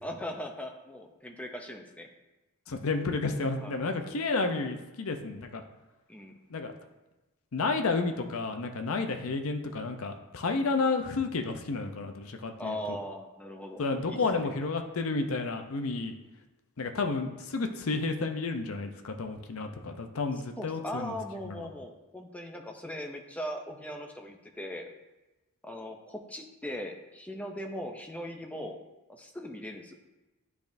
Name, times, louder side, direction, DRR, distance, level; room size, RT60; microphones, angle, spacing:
voice 1, 0.0-2.1 3.6-3.8 6.1-6.3 12.6-14.5 20.6-24.9 25.6-28.8 29.1-29.9, equal, 5° left, 3 dB, 0.5 m, -39 dB
voice 2, 2.7-5.6 6.5-6.7 7.5-13.0 13.8-16.1 16.8-21.1 21.6-21.7, left 3 dB, 70° left, 6 dB, 0.6 m, -31 dB
10.5 x 3.5 x 2.6 m, 1.1 s
head